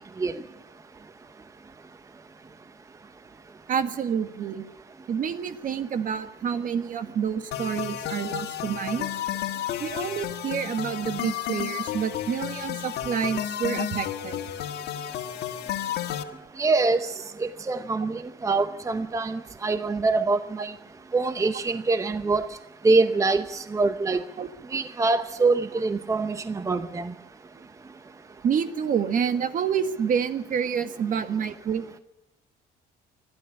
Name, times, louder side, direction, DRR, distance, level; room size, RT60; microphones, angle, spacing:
voice 1, 3.7-4.7 5.1-9.1 9.8-14.4 24.4-24.5 28.4-32.0, right 7 dB, 50° right, 10 dB, 1.5 m, -28 dB
sound 1, 7.5-16.2, left 11 dB, 80° left, 1.6 m, -32 dB
voice 2, 16.6-17.1 17.4-20.7 21.1-22.5 22.8-24.2 24.7-27.1, right 3 dB, 20° right, 11 dB, 0.7 m, -24 dB
28.0 x 11.5 x 8.6 m, 0.93 s
cardioid pair, 110°, 17 cm